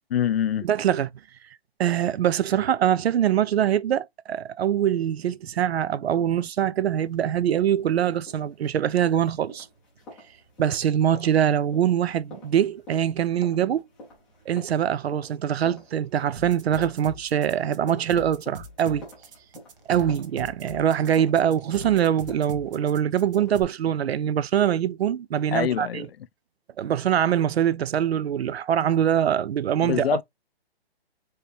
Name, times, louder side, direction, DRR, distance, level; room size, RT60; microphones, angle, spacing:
voice 1, 0.1-0.7 25.5-26.1 29.8-30.2, left 10 dB, 70° left, 0.5 m, -24 dB
voice 2, 0.6-1.1 1.8-9.7 10.6-13.9 14.5-19.0 19.9-26.1 26.8-30.1, right 10 dB, 80° right, 0.6 m, -23 dB
sound 1, 6.8-23.5, left 1 dB, 5° left, 0.5 m, -48 dB
sound 2, 16.4-23.6, right 2 dB, 60° right, 1.3 m, -41 dB
4.7 x 2.8 x 3.2 m
hypercardioid pair, 170°, 31 cm